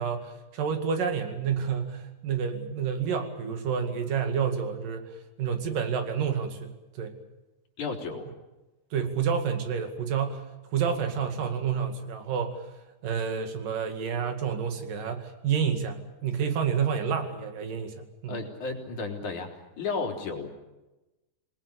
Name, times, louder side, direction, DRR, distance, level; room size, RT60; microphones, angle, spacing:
voice 1, 0.0-5.1 5.4-7.2 8.9-10.4 10.7-12.6 13.0-18.4, right 7 dB, 90° right, 6 dB, 3.9 m, -29 dB
voice 2, 7.8-8.3 18.3-19.5 19.8-20.5, left 4 dB, 65° left, 1 dB, 4.9 m, -33 dB
28.0 x 21.0 x 6.9 m, 1.0 s
omnidirectional pair, 3.7 m